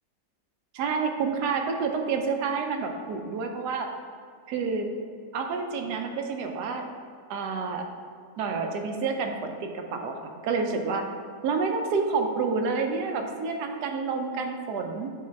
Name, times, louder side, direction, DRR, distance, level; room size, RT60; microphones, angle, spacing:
voice 1, 0.7-3.9 4.5-5.0 5.3-6.9 7.3-7.9 8.4-11.0 11.4-15.1, right 4 dB, 90° right, 4 dB, 1.2 m, -29 dB
6.4 x 3.9 x 4.6 m, 2.2 s
omnidirectional pair, 1.7 m